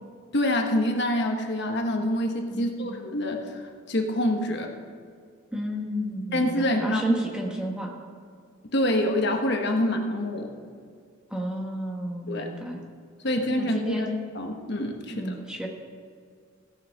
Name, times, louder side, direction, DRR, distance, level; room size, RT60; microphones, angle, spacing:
voice 1, 0.3-4.7 6.3-7.0 8.7-10.5 12.3-12.5 13.2-14.1 14.3-15.3, left 1 dB, 55° left, 3 dB, 1.3 m, -26 dB
voice 2, 2.5-2.9 5.5-7.9 11.3-12.8 13.6-14.1 15.1-15.7, equal, 5° right, 0 dB, 1.2 m, -31 dB
16.0 x 5.8 x 6.4 m, 2.1 s
head